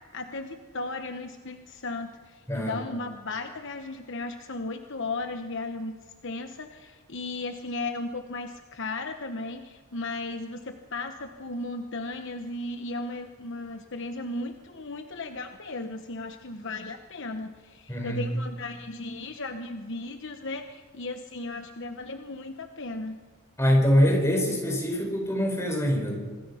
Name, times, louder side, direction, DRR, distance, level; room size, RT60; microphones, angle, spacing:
voice 1, 0.1-6.0 6.2-23.2, left 2 dB, 55° left, 6 dB, 1.1 m, -36 dB
voice 2, 2.5-2.8 17.9-18.2 23.6-26.1, equal, 15° left, 2 dB, 4.9 m, -24 dB
26.5 x 20.5 x 5.7 m, 1.5 s
head